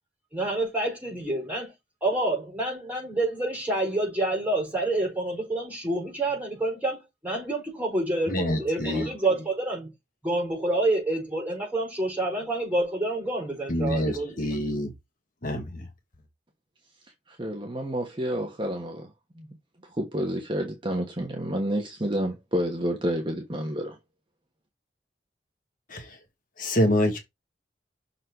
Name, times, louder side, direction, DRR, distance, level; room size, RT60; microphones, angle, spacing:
voice 1, 0.3-1.7 2.0-7.0 7.2-9.9 10.2-14.5, right 2 dB, 10° right, 4.5 m, -28 dB
voice 2, 8.3-9.1 13.7-14.9 15.4-15.9 25.9-26.2 26.6-27.2, left 1 dB, 50° left, 1.4 m, -26 dB
voice 3, 17.3-19.1 19.4-19.5 20.0-24.0, equal, 25° right, 1.2 m, -29 dB
6.4 x 4.0 x 4.5 m
head